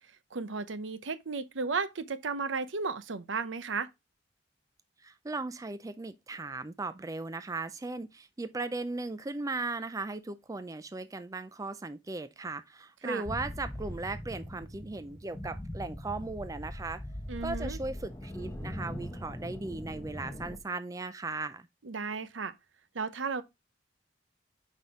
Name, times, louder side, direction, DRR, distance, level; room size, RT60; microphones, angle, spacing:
voice 1, 0.3-3.9 13.0-13.2 17.3-17.8 21.8-22.5 22.9-23.4, right 4 dB, 80° right, 0.7 m, -34 dB
voice 2, 5.0-17.0 17.4-21.7, right 3 dB, 15° right, 0.4 m, -37 dB
sound 1, 13.2-20.6, equal, 15° left, 1.0 m, -41 dB
6.0 x 5.4 x 3.6 m
head